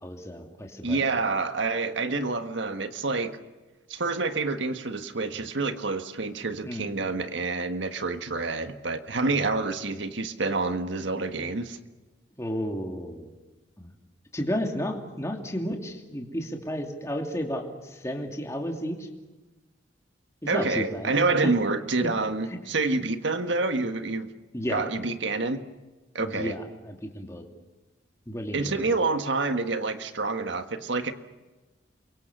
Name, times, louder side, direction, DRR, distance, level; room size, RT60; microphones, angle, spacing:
voice 1, 0.0-1.0 6.6-7.0 9.3-9.5 12.4-13.3 13.8-14.0 14.3-19.1 20.4-21.1 22.0-22.1 22.5-22.6 24.5-24.9 25.4-25.5 26.2-27.4 28.3-28.8, equal, 15° left, 2 dB, 2.7 m, -33 dB
voice 2, 0.8-3.3 3.9-11.8 20.5-24.3 24.7-25.6 26.1-26.5 28.5-31.1, right 3 dB, 75° right, 8 dB, 1.6 m, -27 dB
29.0 x 23.5 x 6.8 m, 1.2 s
head